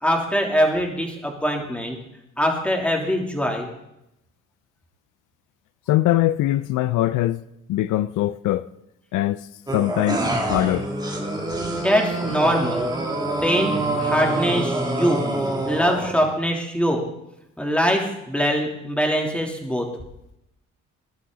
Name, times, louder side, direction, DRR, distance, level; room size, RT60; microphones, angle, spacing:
voice 1, 0.0-2.0 2.4-3.7 11.7-12.9 13.4-15.2 15.6-17.0 17.6-19.9, equal, 5° left, 3.2 m, -23 dB
voice 2, 5.9-7.4 7.7-8.7 9.1-9.5 9.7-10.9, left 15 dB, 85° left, 0.6 m, -22 dB
sound 1, 9.7-16.3, right 2 dB, 15° right, 2.8 m, -26 dB
19.0 x 11.5 x 4.0 m
cardioid pair, 90°, 30 cm